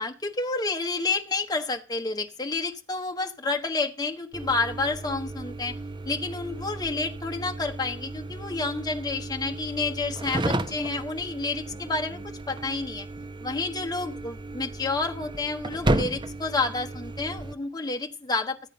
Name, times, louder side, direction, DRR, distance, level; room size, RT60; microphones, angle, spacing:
voice 1, 0.0-5.7 6.0-12.2 12.5-13.1 13.4-18.7, left 3 dB, 20° left, 1.3 m, -29 dB
sound 1, 4.3-17.5, right 2 dB, 25° right, 0.8 m, -33 dB
14.0 x 8.6 x 5.4 m
head